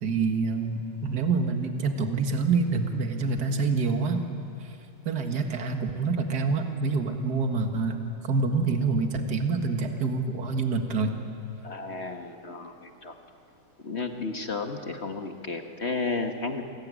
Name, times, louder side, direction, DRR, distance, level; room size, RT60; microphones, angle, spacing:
voice 1, 0.0-4.3 4.6-4.7 5.1-8.0 8.3-11.1, right 4 dB, 55° right, 5 dB, 2.3 m, -26 dB
voice 2, 11.6-13.1 13.8-16.6, left 3 dB, 35° left, 5 dB, 1.5 m, -33 dB
28.5 x 21.0 x 9.7 m, 2.6 s
omnidirectional pair, 2.2 m